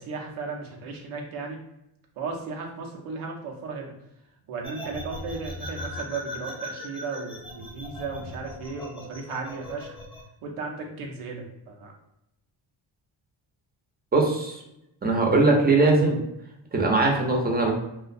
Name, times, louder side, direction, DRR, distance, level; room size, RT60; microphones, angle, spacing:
voice 1, 0.0-1.6 2.2-3.9 4.5-10.0 10.4-11.9, right 4 dB, 85° right, 1 dB, 0.7 m, -35 dB
sound 1, 4.6-10.2, left 1 dB, 10° left, 0.8 m, -38 dB
voice 2, 14.1-14.6 15.0-16.2 16.7-17.7, right 3 dB, 20° right, 1 dB, 0.6 m, -20 dB
2.5 x 2.1 x 2.4 m, 0.83 s
cardioid pair, 60°, 49 cm